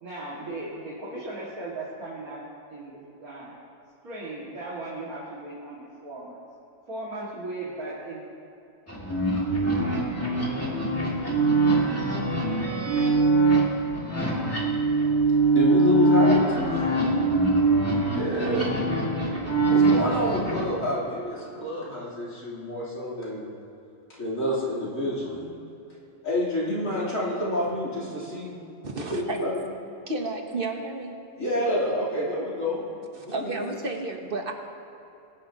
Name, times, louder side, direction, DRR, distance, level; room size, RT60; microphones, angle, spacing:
voice 1, 0.0-2.4 2.7-3.6 4.0-6.4 6.9-8.2, right 2 dB, 80° right, -7 dB, 2.7 m, -37 dB
sound 1, 8.9-20.6, right 2 dB, 10° left, 2.3 m, -23 dB
voice 2, 15.5-17.0 18.2-18.8 19.7-23.5 24.1-25.4 26.2-28.6 28.9-29.6 31.4-32.9 33.2-33.6, left 1 dB, 65° left, -7 dB, 3.8 m, -28 dB
voice 3, 28.8-29.4 30.1-31.2 33.3-34.5, right 2 dB, 40° right, 3 dB, 1.2 m, -31 dB
22.0 x 11.0 x 2.9 m, 2.8 s
omnidirectional pair, 1.5 m